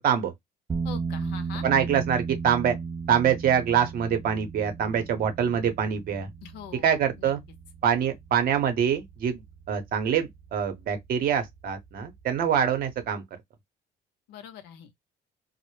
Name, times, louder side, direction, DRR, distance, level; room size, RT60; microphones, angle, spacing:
sound 1, 0.7-13.0, right 5 dB, 20° right, 0.3 m, -37 dB
voice 1, 0.8-1.6 6.4-7.3 14.3-14.9, left 9 dB, 90° left, 0.7 m, -43 dB
voice 2, 1.6-2.8 3.1-6.3 6.8-7.4 7.8-13.2, right 8 dB, 60° right, 0.8 m, -25 dB
2.0 x 2.0 x 3.0 m
cardioid pair, 110°, 17 cm